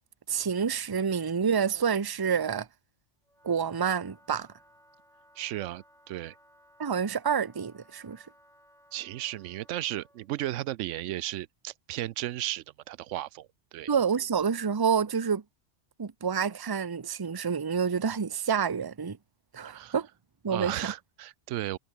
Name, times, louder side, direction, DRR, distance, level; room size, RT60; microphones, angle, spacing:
voice 1, 0.3-2.7 3.4-4.5 6.8-8.2 13.9-15.4 16.0-19.2 19.5-20.1 20.4-20.9, right 6 dB, 25° right, 0.6 m, -28 dB
Wind instrument woodwind instrument, 3.2-10.3, equal, ahead, 6.8 m, -61 dB
voice 2, 5.4-6.4 8.9-13.9 19.6-19.9 20.5-21.8, right 14 dB, 90° right, 0.9 m, -35 dB
omnidirectional pair, 1.2 m